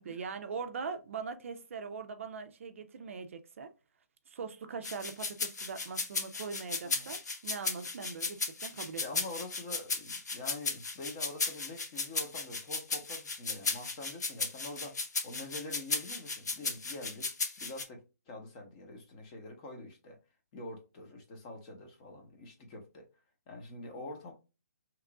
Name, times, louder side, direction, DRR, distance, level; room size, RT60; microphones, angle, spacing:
voice 1, 0.0-3.7 4.3-9.2, right 5 dB, 50° right, 0.4 m, -41 dB
sound 1, 4.8-17.8, left 4 dB, 85° left, 0.8 m, -35 dB
voice 2, 9.0-15.0 15.2-17.3 17.6-20.2 20.5-23.0 23.5-24.3, left 2 dB, 25° left, 0.8 m, -45 dB
3.0 x 2.4 x 3.5 m
hypercardioid pair, 165°, 9 cm